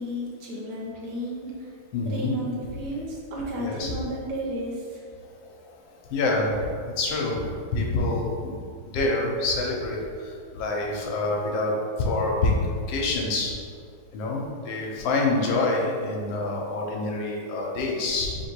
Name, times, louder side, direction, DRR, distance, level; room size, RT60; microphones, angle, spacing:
voice 1, 0.0-1.7 2.0-5.0 10.1-10.8, equal, 65° right, -3 dB, 1.2 m, -33 dB
voice 2, 1.9-2.3 3.6-3.9 6.1-6.7 7.0-7.4 7.7-8.5 8.9-10.0 10.5-11.7 12.0-12.5 12.9-13.5 14.1-18.4, left 2 dB, 85° left, -1 dB, 1.5 m, -26 dB
3.4 x 2.9 x 4.4 m, 2.2 s
omnidirectional pair, 2.1 m